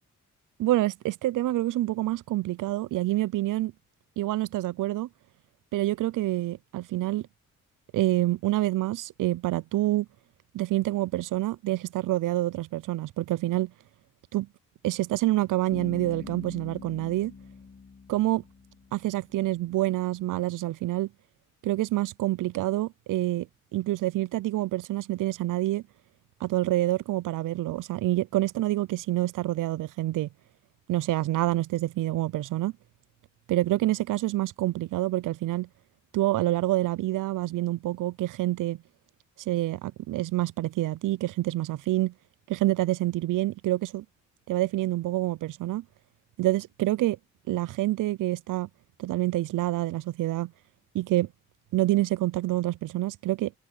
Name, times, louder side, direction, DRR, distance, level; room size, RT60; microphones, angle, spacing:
voice 1, 0.6-3.7 4.2-5.1 5.7-7.3 7.9-10.1 10.5-13.7 14.3-14.5 14.8-17.3 18.1-18.4 18.9-21.1 21.6-23.5 23.7-25.8 26.4-30.3 30.9-32.7 33.5-35.7 36.1-38.8 39.5-42.1 42.5-44.0 44.5-45.8 46.4-47.2 47.5-48.7 49.0-50.5 50.9-51.3 51.7-53.6, right 16 dB, 75° right, 0.5 m, -27 dB
Bass guitar, 15.7-19.4, left 5 dB, 40° left, 2.9 m, -44 dB
cardioid pair, 65°, 32 cm